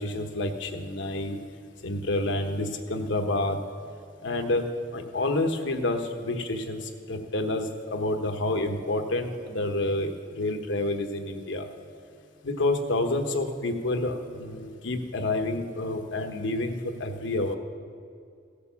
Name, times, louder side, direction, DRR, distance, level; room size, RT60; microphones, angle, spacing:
voice 1, 0.0-1.4 1.8-3.6 4.2-4.6 4.9-6.8 7.1-11.7 12.4-17.6, left 2 dB, 75° left, 5 dB, 1.1 m, -28 dB
16.5 x 6.8 x 7.0 m, 2.3 s
head